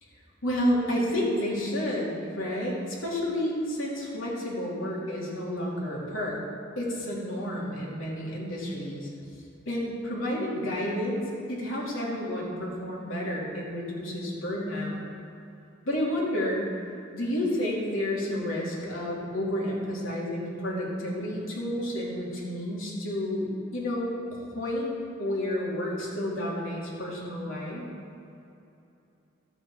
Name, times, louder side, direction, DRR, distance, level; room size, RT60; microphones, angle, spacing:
voice 1, 0.4-6.4 6.8-9.1 9.7-11.2 11.5-15.0 15.8-16.6 17.1-24.9 25.2-27.8, left 1 dB, 90° left, -4 dB, 2.9 m, -30 dB
12.5 x 8.3 x 4.9 m, 2.8 s
head